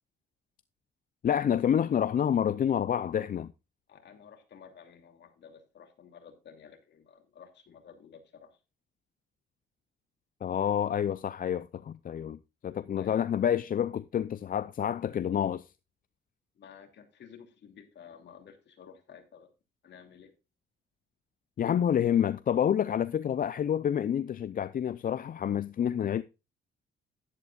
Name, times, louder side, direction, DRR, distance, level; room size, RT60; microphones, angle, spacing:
voice 1, 1.2-3.5 10.4-15.7 21.6-26.2, left 9 dB, 45° left, 0.5 m, -28 dB
voice 2, 3.9-8.6 12.9-13.2 16.5-19.5 19.8-20.3, left 7 dB, 60° left, 2.7 m, -53 dB
11.5 x 11.0 x 2.4 m
cardioid pair, 90°, 20 cm